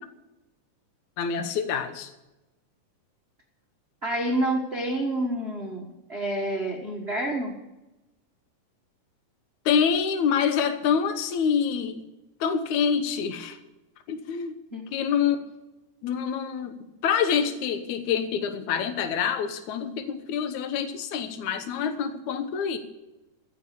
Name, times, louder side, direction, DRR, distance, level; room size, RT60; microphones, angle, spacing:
voice 1, 1.2-2.1 9.7-12.0 12.4-13.6 14.1-14.6 14.9-15.4 16.0-22.8, left 7 dB, 65° left, 9 dB, 2.4 m, -26 dB
voice 2, 4.0-7.5 14.7-14.8, right 1 dB, 50° right, 1 dB, 0.7 m, -28 dB
15.0 x 8.6 x 8.3 m, 0.99 s
omnidirectional pair, 3.9 m